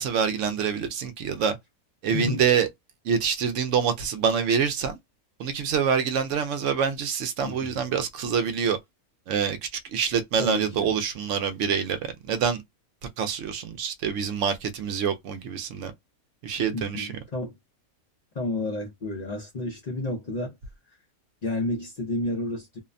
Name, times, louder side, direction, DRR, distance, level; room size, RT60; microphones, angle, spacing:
voice 1, 0.0-1.6 2.0-2.7 3.0-5.0 5.4-8.8 9.3-12.0 12.3-12.6 13.2-15.9 16.4-17.1, right 7 dB, 65° right, 0.8 m, -26 dB
voice 2, 7.4-7.8 10.4-11.0 16.7-17.5 18.3-20.6 21.4-22.8, left 2 dB, 85° left, 0.3 m, -31 dB
2.7 x 2.1 x 2.4 m
omnidirectional pair, 1.5 m